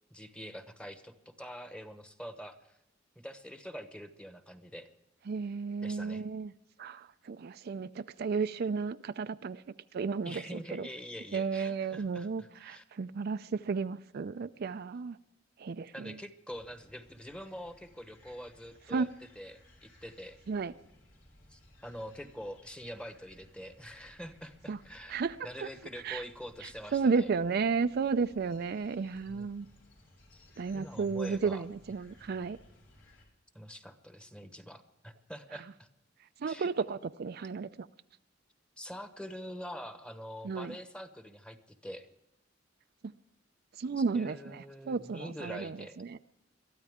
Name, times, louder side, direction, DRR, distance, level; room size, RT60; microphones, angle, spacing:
voice 1, 0.1-2.6 3.2-4.9 5.8-6.2 10.2-12.8 15.9-19.1 19.3-20.4 21.5-27.3 29.3-29.5 30.3-30.4 30.7-31.7 33.5-35.9 36.4-36.7 38.8-42.1 44.0-46.0, equal, 5° left, 1.0 m, -45 dB
voice 2, 5.3-6.5 6.8-9.6 9.9-10.9 11.3-15.2 15.6-16.1 18.9-19.1 20.5-20.7 24.7-24.8 25.1-25.4 25.6-25.7 26.0-26.2 26.9-29.7 30.6-32.6 36.4-37.9 40.4-40.7 43.8-45.8 46.1-46.2, right 5 dB, 55° right, 0.4 m, -33 dB
sound 1, 16.5-33.3, left 1 dB, 80° left, 4.3 m, -60 dB
22.5 x 13.0 x 3.6 m
head